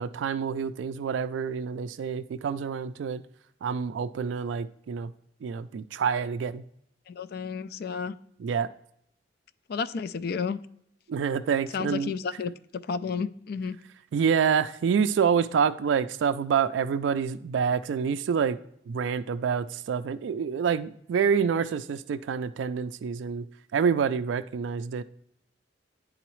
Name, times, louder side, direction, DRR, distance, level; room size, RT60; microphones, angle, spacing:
voice 1, 0.0-3.2 3.6-5.1 5.4-6.6 8.4-8.7 11.1-12.1 14.1-18.6 18.9-23.5 23.7-25.0, right 6 dB, 85° right, 11 dB, 0.3 m, -27 dB
voice 2, 7.1-8.2 9.7-10.6 11.7-12.5 12.9-13.8, left 5 dB, 55° left, 14 dB, 0.3 m, -31 dB
10.0 x 3.8 x 3.1 m, 0.71 s
head